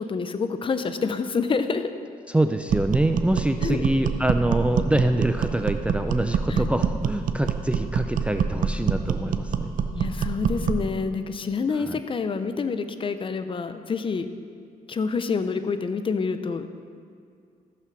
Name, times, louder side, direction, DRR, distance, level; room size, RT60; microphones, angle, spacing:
voice 1, 0.0-1.9 3.6-3.8 6.5-6.7 9.9-14.3 14.9-16.7, left 5 dB, 35° left, 10 dB, 0.6 m, -27 dB
voice 2, 2.3-9.7 11.8-12.0, right 1 dB, 10° right, 7 dB, 0.4 m, -25 dB
sound 1, 2.7-10.9, right 6 dB, 60° right, 0.7 m, -26 dB
14.5 x 5.8 x 6.2 m, 2.3 s
cardioid pair, 110°, 15 cm